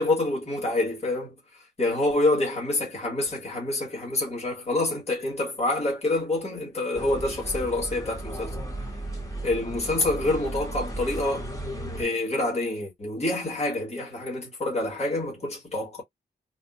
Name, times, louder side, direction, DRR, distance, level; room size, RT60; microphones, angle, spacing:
voice 1, 0.0-1.3 1.8-8.5 9.4-11.5 12.0-16.0, left 2 dB, 40° left, 2.1 m, -27 dB
sound 1, 6.9-12.0, right 1 dB, 20° left, 1.4 m, -35 dB
4.1 x 2.5 x 2.6 m
wide cardioid pair, 140°, 17 cm